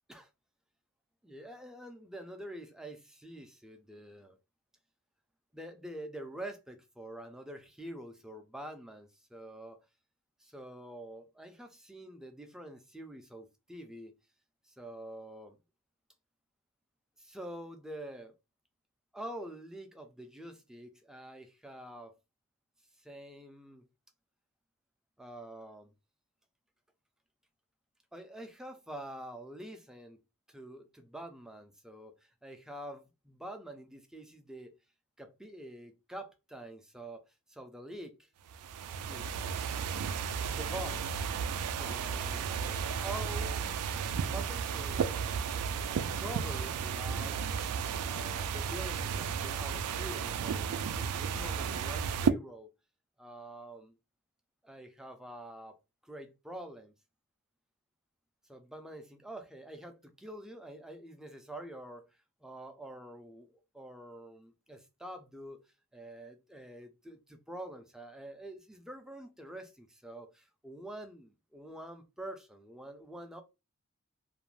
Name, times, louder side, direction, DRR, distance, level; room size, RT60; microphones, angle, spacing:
voice 1, 1.2-4.4 5.5-9.8 10.4-14.1 14.7-15.6 17.2-18.4 19.1-22.2 23.0-23.8 25.2-25.9 28.1-30.2 30.5-34.7 35.2-38.3 39.1-39.5 40.4-41.1 41.7-43.6 44.2-47.4 48.0-52.7 53.2-54.0 54.6-55.8 56.0-56.9 58.5-62.1 62.4-63.5 63.7-65.6 65.9-73.4, right 1 dB, 5° right, 0.3 m, -46 dB
sound 1, 38.5-52.3, right 6 dB, 85° right, 0.3 m, -33 dB
2.4 x 2.1 x 3.1 m
head